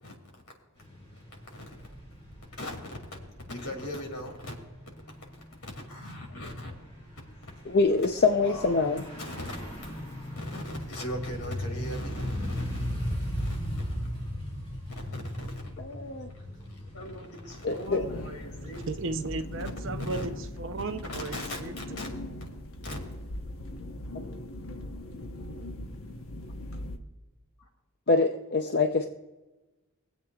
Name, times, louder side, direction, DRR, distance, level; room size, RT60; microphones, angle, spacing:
sound 1, 0.8-20.2, equal, 25° left, 3.6 m, -38 dB
voice 1, 2.5-3.2 3.5-4.5 5.3-6.7 8.4-8.9 9.2-9.9 10.2-12.8 13.4-14.0 15.1-15.5 15.9-16.0 16.7-18.9 20.0-20.3 21.0-22.1 22.8-23.0, left 1 dB, 90° left, 1 dB, 2.5 m, -40 dB
voice 2, 7.7-9.0 15.8-16.3 17.6-18.0 28.1-29.1, left 3 dB, 45° left, 5 dB, 0.6 m, -25 dB
sound 2, 17.9-27.0, left 1 dB, 70° left, 1.1 m, -40 dB
voice 3, 18.6-21.8, right 3 dB, 60° right, 8 dB, 0.7 m, -35 dB
24.0 x 8.1 x 2.4 m, 1.1 s
head